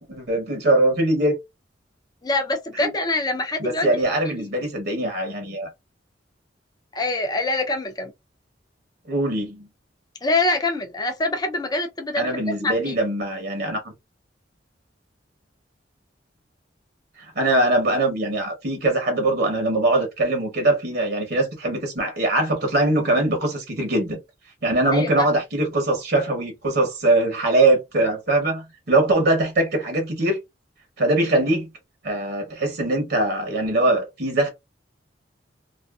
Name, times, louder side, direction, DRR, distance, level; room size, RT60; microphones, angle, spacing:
voice 1, 0.0-1.3 2.8-2.9 3.6-5.7 9.1-9.7 12.2-13.9 17.2-24.2 24.6-30.4 31.0-31.7 32.0-34.5, right 2 dB, 60° right, 0.9 m, -22 dB
voice 2, 2.2-3.9 4.2-4.5 6.9-8.1 10.2-12.3 12.6-13.0 24.9-25.3, left 2 dB, 20° left, 0.5 m, -25 dB
2.5 x 2.5 x 2.3 m
head